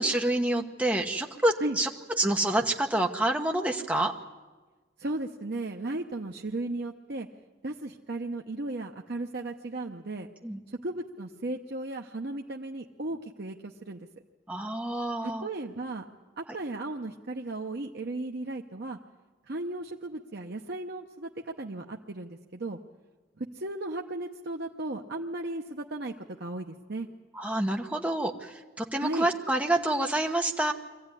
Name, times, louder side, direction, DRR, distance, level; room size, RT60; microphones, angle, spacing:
voice 1, 0.0-1.9 2.2-4.1 10.4-10.6 14.5-15.5 27.3-30.7, right 1 dB, 5° right, 2 dB, 1.2 m, -27 dB
voice 2, 5.0-7.3 7.6-10.3 10.7-14.1 15.2-16.1 16.4-19.0 19.5-22.8 23.4-27.1 29.0-29.3, right 2 dB, 55° right, 1 dB, 0.9 m, -35 dB
23.5 x 15.0 x 9.8 m, 1.3 s
head